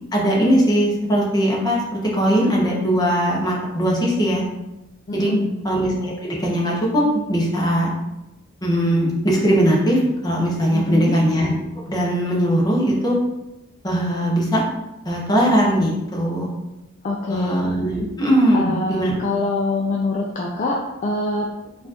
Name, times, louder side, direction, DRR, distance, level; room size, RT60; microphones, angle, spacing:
voice 1, 0.1-4.4 5.1-5.3 5.6-7.9 8.6-11.5 11.9-13.2 13.8-14.6 15.1-16.5 17.3-19.2, equal, 20° left, -3 dB, 0.7 m, -20 dB
voice 2, 5.1-5.5 10.7-11.1 17.0-17.6 18.5-21.5, left 2 dB, 35° left, -1 dB, 0.3 m, -24 dB
4.2 x 2.4 x 2.8 m, 0.98 s
head